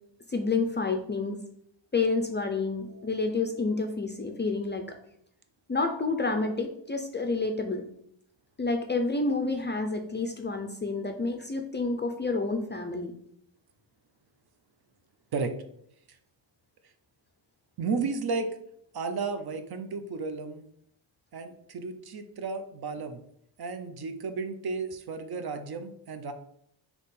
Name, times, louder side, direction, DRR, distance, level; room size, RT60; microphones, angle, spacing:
voice 1, 0.3-1.4 1.9-5.0 5.7-7.8 8.6-13.1, left 3 dB, 25° left, 5 dB, 0.4 m, -29 dB
voice 2, 17.8-18.5 18.9-20.6 21.3-23.2 23.6-26.3, right 4 dB, 50° right, 8 dB, 0.6 m, -33 dB
3.6 x 2.9 x 4.2 m, 0.72 s
cardioid pair, 95°, 48 cm